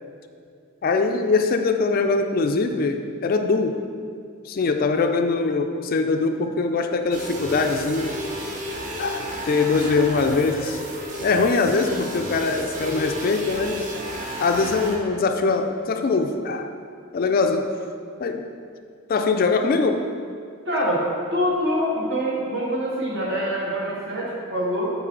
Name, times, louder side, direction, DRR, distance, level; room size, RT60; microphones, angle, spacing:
voice 1, 0.8-3.8 4.4-8.2 9.0-10.8 11.2-13.9 14.4-16.7 17.1-17.7 18.2-18.5 19.1-20.1 20.7-20.8, left 4 dB, 45° left, 6 dB, 0.3 m, -22 dB
sound 1, 7.1-15.0, equal, 35° right, 0.8 m, -32 dB
voice 2, 20.6-24.9, equal, 55° right, -4 dB, 1.5 m, -25 dB
7.7 x 4.8 x 3.8 m, 2.3 s
head